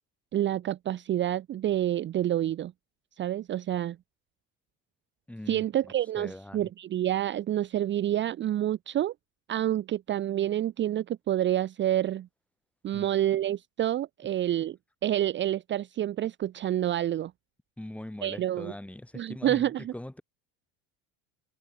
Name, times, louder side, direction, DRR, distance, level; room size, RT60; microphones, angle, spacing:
voice 1, 0.3-2.7 3.2-4.0 5.5-9.1 9.5-12.3 12.8-14.8 15.0-17.3 18.2-18.7 19.1-19.9, right 12 dB, 30° right, 0.8 m, -28 dB
voice 2, 5.3-5.6 6.2-6.7 12.9-13.1 17.8-20.2, left 1 dB, 5° left, 2.4 m, -41 dB
cardioid pair, 155°, 38 cm